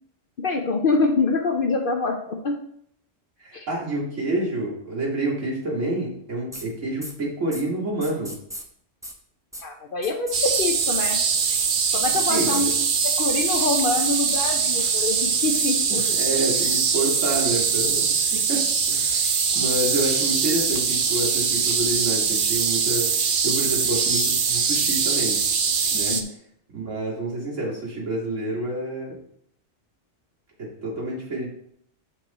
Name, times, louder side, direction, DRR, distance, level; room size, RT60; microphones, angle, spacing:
voice 1, 0.4-2.6 3.5-3.7 9.6-11.2 11.9-12.8 13.0-16.0 19.5-19.7 26.0-26.3, left 3 dB, 50° left, 3 dB, 0.9 m, -25 dB
voice 2, 3.4-8.4 12.3-12.7 15.9-19.3 19.5-23.1 23.4-25.4 25.9-26.2 26.7-29.1 30.6-31.5, right 2 dB, 85° right, -4 dB, 2.7 m, -28 dB
sound 1, 6.5-6.6 7.0-7.1 7.5-7.6 8.0-8.6 9.0-9.1 9.5-9.6 10.0-10.6 11.0-11.1 11.4-11.6 12.0-12.6 13.0-13.1 13.5-13.6 14.0-14.4, equal, 5° right, 0.6 m, -37 dB
sound 2, 10.3-26.2, right 6 dB, 50° right, 0.8 m, -22 dB
7.6 x 5.4 x 4.2 m, 0.69 s
omnidirectional pair, 1.3 m